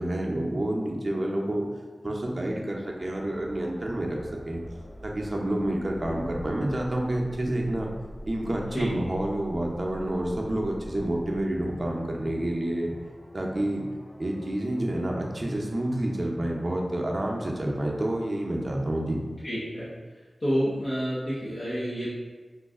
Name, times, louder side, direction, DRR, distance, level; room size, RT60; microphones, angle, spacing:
voice 1, 0.0-1.7 2.0-4.2 4.4-4.6 5.0-7.9 8.3-12.9 13.3-13.8 14.2-19.2, right 1 dB, 45° right, -1 dB, 0.6 m, -29 dB
sound 1, 2.8-18.6, equal, 25° left, 1.2 m, -46 dB
voice 2, 19.4-19.9 20.4-22.1, equal, 60° left, -11 dB, 0.9 m, -28 dB
3.1 x 2.5 x 3.5 m, 1.4 s
wide cardioid pair, 55°, 0 cm